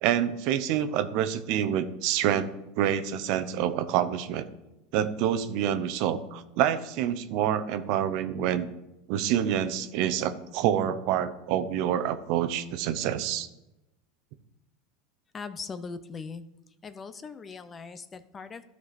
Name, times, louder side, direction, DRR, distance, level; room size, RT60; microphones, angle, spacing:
voice 1, 0.0-2.5 2.8-4.5 4.9-8.7 9.1-13.5, right 10 dB, 60° right, 11 dB, 0.8 m, -27 dB
voice 2, 15.3-16.4 16.8-18.6, left 5 dB, 25° left, 12 dB, 0.7 m, -40 dB
13.0 x 4.7 x 4.2 m, 0.94 s
hypercardioid pair, 105°, 0 cm